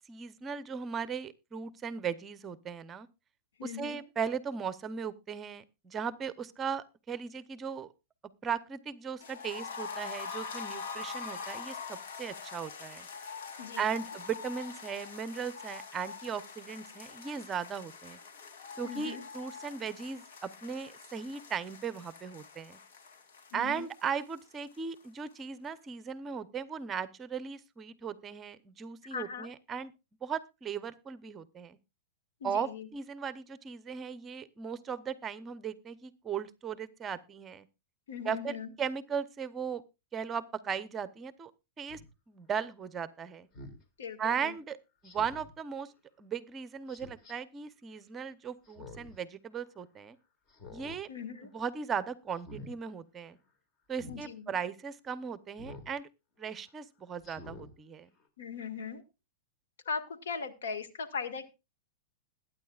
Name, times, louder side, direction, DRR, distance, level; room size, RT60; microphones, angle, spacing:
voice 1, 0.1-3.1 3.6-7.9 8.4-13.1 13.8-18.2 18.8-22.8 23.5-29.9 30.2-31.8 32.4-37.7 38.2-39.8 40.1-41.5 41.8-42.0 42.3-43.5 44.2-44.8 45.0-45.9 46.2-50.2 50.7-51.1 51.4-53.4 53.9-56.1 56.4-58.1, right 6 dB, 20° right, 14 dB, 0.8 m, -37 dB
voice 2, 3.6-4.0 13.6-13.9 18.8-19.2 23.5-23.9 29.1-29.5 32.4-32.9 38.1-38.7 44.0-44.5 51.1-51.5 54.1-54.6 58.4-59.0 59.9-61.5, left 6 dB, 85° left, 9 dB, 1.9 m, -39 dB
sound 1, 9.2-25.0 25.3-25.4 25.7-25.8, left 5 dB, 70° left, 2.9 m, -44 dB
Speech synthesizer, 41.9-42.1 43.5-43.8 45.0-45.5 46.9-47.3 48.6-49.2 49.6-49.7 50.5-51.0 51.4-51.7 52.3-52.7 53.9-54.2 55.6-55.9 56.4-56.5 57.2-57.7 58.2-58.3, left 2 dB, 30° left, 2.3 m, -48 dB
21.0 x 9.5 x 2.4 m, 0.27 s
hypercardioid pair, 140°, 0 cm